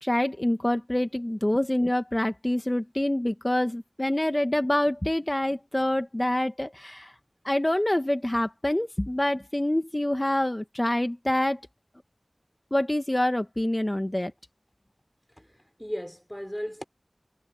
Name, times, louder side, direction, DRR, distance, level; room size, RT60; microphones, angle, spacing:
voice 1, 0.0-7.1 7.4-11.6 12.7-14.3, left 1 dB, 30° left, 1.4 m, -26 dB
voice 2, 15.4-16.8, equal, 5° left, 4.0 m, -36 dB
wide cardioid pair, 40°, 0 cm